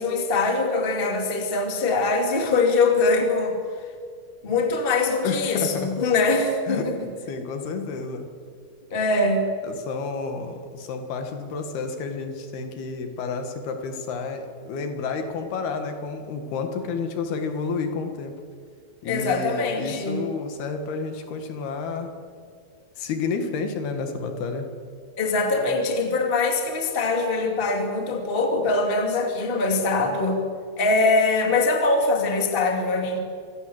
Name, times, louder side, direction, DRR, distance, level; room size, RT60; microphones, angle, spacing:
voice 1, 0.0-3.6 4.4-7.1 8.9-9.4 19.0-20.2 25.2-30.4 30.8-33.2, left 3 dB, 20° left, 3 dB, 1.9 m, -23 dB
voice 2, 5.2-5.9 6.7-6.9 7.3-8.3 9.6-18.4 19.0-22.1 23.0-24.7, left 5 dB, 70° left, 6 dB, 3.7 m, -30 dB
25.5 x 17.0 x 7.9 m, 2.1 s
omnidirectional pair, 4.7 m